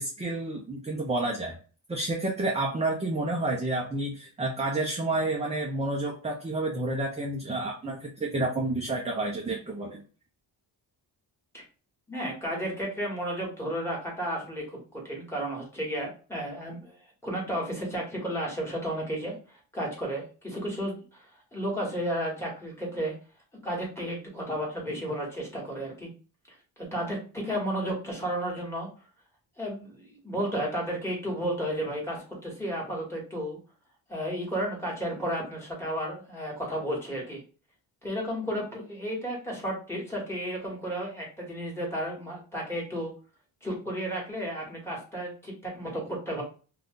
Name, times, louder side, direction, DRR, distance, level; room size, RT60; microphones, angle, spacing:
voice 1, 0.0-1.6 1.9-10.0, right 2 dB, 15° right, -1 dB, 0.4 m, -30 dB
voice 2, 12.1-23.1 23.6-26.1 26.8-28.9 29.6-33.6 34.1-37.4 38.0-43.1 43.6-46.4, equal, 5° left, -4 dB, 1.3 m, -33 dB
2.5 x 2.3 x 3.5 m, 0.37 s
wide cardioid pair, 125°, 47 cm